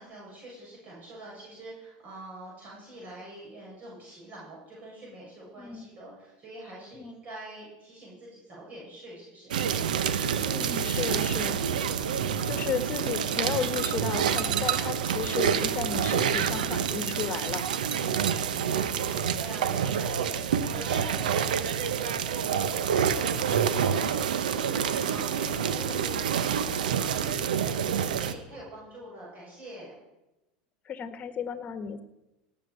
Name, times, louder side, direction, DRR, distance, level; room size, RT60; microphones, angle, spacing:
voice 1, 0.0-9.5 17.9-29.9, right 1 dB, 35° right, -5 dB, 7.4 m, -45 dB
sound 1, 9.5-28.3, right 8 dB, 90° right, 1.0 m, -27 dB
voice 2, 10.4-11.6 12.5-17.7 30.8-32.0, left 7 dB, 35° left, 10 dB, 1.6 m, -34 dB
18.0 x 7.5 x 8.0 m, 0.97 s
hypercardioid pair, 105°, 4 cm